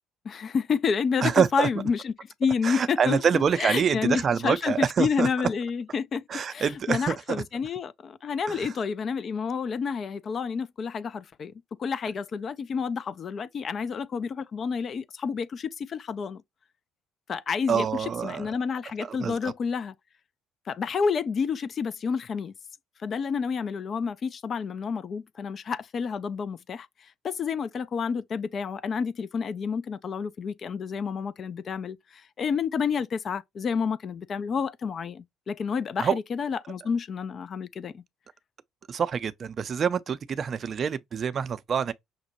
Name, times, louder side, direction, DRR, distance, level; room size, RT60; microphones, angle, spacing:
voice 1, 0.3-2.1 2.4-11.5 11.8-16.4 17.3-19.9 20.7-22.5 23.0-26.9 27.2-32.0 32.4-38.0, left 6 dB, 45° left, 0.4 m, -29 dB
voice 2, 1.2-1.7 2.6-5.3 6.3-7.4 8.5-8.7 17.7-18.5 19.0-19.5 36.0-36.2 38.9-41.9, right 7 dB, 45° right, 0.4 m, -26 dB
5.8 x 2.1 x 2.8 m
hypercardioid pair, 50°, 0 cm